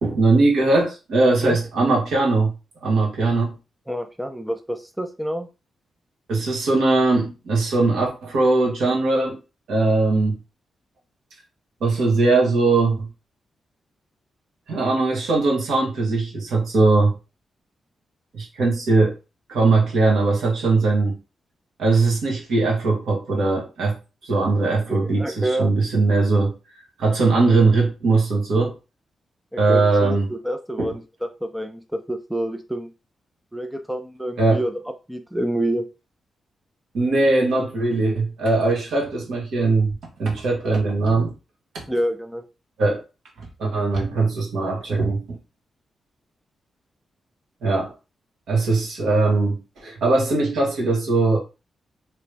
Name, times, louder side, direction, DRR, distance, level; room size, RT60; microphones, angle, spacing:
voice 1, 0.0-2.5 2.8-3.6 6.3-9.4 9.7-10.4 11.8-13.1 14.7-17.1 18.3-19.1 19.5-21.2 21.8-24.0 24.2-26.5 27.0-28.7 29.6-30.3 30.8-30.9 34.4-34.6 36.9-41.3 41.7-41.8 42.8-43.0 43.6-45.4 47.6-47.9 48.5-51.4, right 3 dB, 85° right, 1.6 m, -20 dB
voice 2, 3.9-5.5 24.9-25.7 29.5-32.9 33.5-34.7 35.1-35.9 41.9-42.4, right 1 dB, 5° right, 0.3 m, -27 dB
3.3 x 3.0 x 3.3 m
wide cardioid pair, 170°, 0 cm